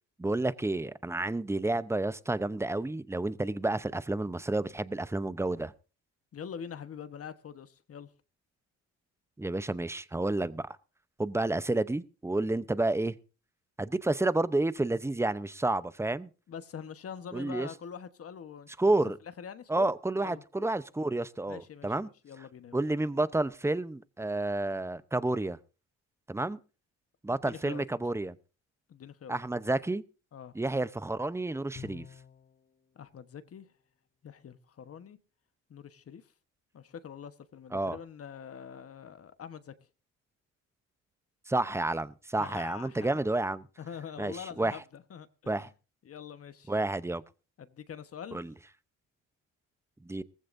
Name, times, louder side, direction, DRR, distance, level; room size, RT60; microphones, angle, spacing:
voice 1, 0.2-5.7 9.4-10.7 11.2-13.1 13.8-16.3 17.3-17.7 18.8-19.2 19.7-22.1 22.7-25.6 26.3-26.6 27.2-28.4 29.3-30.0 30.5-32.1 37.7-38.0 41.5-43.6 44.2-44.8 45.5-45.7 46.7-47.2 48.3-48.5 50.0-50.2, right 2 dB, 10° right, 0.7 m, -30 dB
voice 2, 6.3-8.1 16.5-19.9 20.2-20.4 21.5-22.8 27.3-27.9 28.9-29.4 30.3-30.5 32.9-33.7 34.2-35.2 35.7-36.3 36.7-39.7 42.4-43.2 43.8-45.7 46.0-46.7 47.6-48.4, left 7 dB, 50° left, 1.2 m, -44 dB
Bowed string instrument, 31.8-32.6, left 7 dB, 30° left, 0.9 m, -47 dB
18.5 x 15.0 x 2.6 m
cardioid pair, 90°, 30 cm